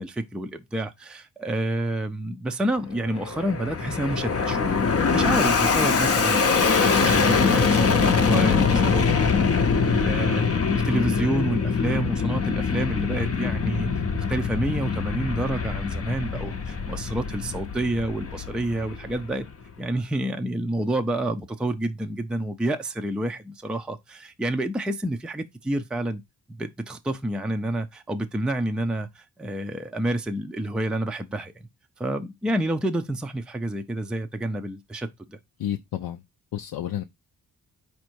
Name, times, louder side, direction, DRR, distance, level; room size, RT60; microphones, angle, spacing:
voice 1, 0.0-6.4 6.8-13.9 14.3-19.5 19.8-26.2 26.5-31.5 32.0-35.4, right 1 dB, ahead, 0.4 m, -29 dB
Fixed-wing aircraft airplane, 2.9-19.5, left 5 dB, 40° left, 0.6 m, -23 dB
voice 2, 35.6-36.2 36.5-37.0, left 12 dB, 75° left, 0.5 m, -30 dB
4.3 x 2.7 x 4.4 m
cardioid pair, 80°, 38 cm